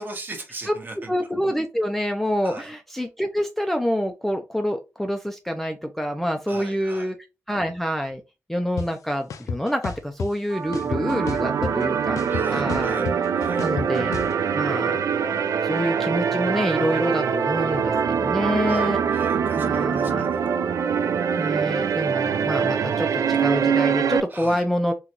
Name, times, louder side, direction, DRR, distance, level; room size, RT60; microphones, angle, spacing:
voice 1, 0.0-1.1 2.4-2.7 6.5-7.1 12.3-13.7 18.6-20.4 24.3-24.6, right 2 dB, 35° right, 0.8 m, -38 dB
voice 2, 1.1-7.2 7.5-8.2 8.5-12.2 12.5-13.1 13.6-14.1 14.5-15.0 15.6-19.0 19.6-20.3 21.4-24.9, equal, 5° left, 0.3 m, -27 dB
sound 1, 8.8-8.9 9.3-10.3 10.7-11.8 12.2-14.3, left 6 dB, 90° left, 0.4 m, -31 dB
sound 2, 10.5-24.2, right 7 dB, 85° right, 0.3 m, -23 dB
3.8 x 2.2 x 2.9 m
wide cardioid pair, 170°, 5 cm